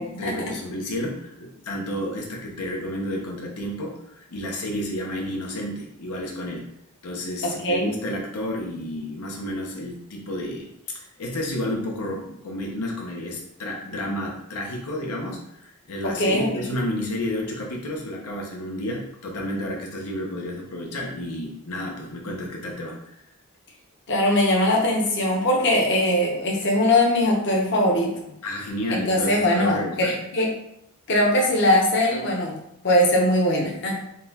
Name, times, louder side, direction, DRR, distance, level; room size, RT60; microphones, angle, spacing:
voice 1, 0.0-6.6 7.0-23.1 28.4-30.2, left 1 dB, 85° left, 0 dB, 0.7 m, -31 dB
voice 2, 7.4-7.9 16.0-16.7 24.1-28.3 28.9-30.5 31.1-32.6 32.8-34.0, left 1 dB, 55° left, -2 dB, 0.8 m, -21 dB
3.9 x 2.3 x 4.0 m, 0.76 s
head